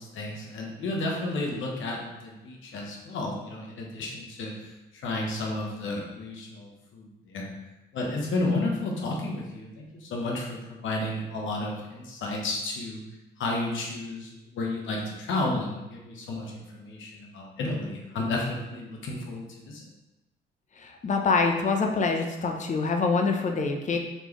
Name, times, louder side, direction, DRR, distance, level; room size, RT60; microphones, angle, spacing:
voice 1, 0.0-4.5 5.0-7.5 7.9-13.0 13.4-19.9, left 2 dB, 70° left, -1 dB, 1.0 m, -32 dB
voice 2, 20.8-24.0, left 4 dB, 35° left, 3 dB, 0.6 m, -25 dB
4.3 x 3.3 x 3.0 m, 0.99 s
cardioid pair, 85°, 21 cm